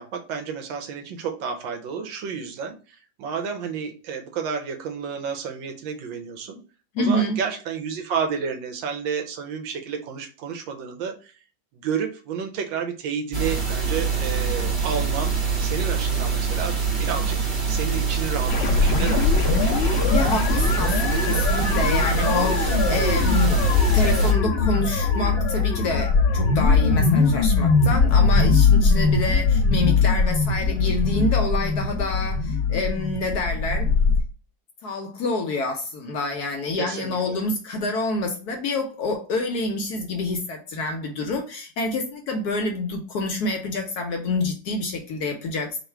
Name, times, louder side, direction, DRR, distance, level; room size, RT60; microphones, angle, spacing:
voice 1, 0.0-6.6 7.0-11.3 11.7-15.4 15.6-17.4 17.7-19.4 36.8-37.4, right 6 dB, 80° right, 5 dB, 1.5 m, -31 dB
voice 2, 6.9-7.4 20.1-33.9 34.8-45.8, left 2 dB, 70° left, 4 dB, 1.0 m, -27 dB
sound 1, 13.3-24.3, right 6 dB, 35° right, 1.6 m, -25 dB
sound 2, 18.5-34.2, left 4 dB, 90° left, 0.5 m, -21 dB
3.9 x 2.4 x 4.4 m, 0.36 s
omnidirectional pair, 2.1 m